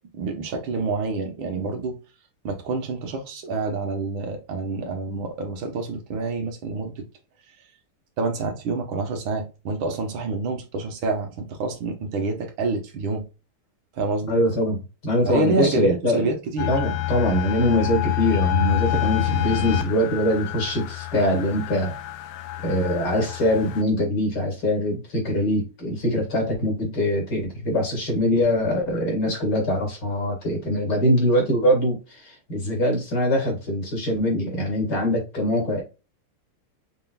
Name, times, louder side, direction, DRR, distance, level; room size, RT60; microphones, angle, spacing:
voice 1, 0.1-2.0 2.4-7.0 8.2-13.2 14.0-14.4 15.2-16.7, right 3 dB, 65° right, 1.9 m, -27 dB
voice 2, 14.3-16.3 16.7-21.9 22.6-35.8, left 1 dB, 50° left, 2.6 m, -23 dB
sound 1, 16.6-23.8, left 15 dB, 90° left, 1.5 m, -27 dB
5.7 x 3.7 x 2.3 m
omnidirectional pair, 2.4 m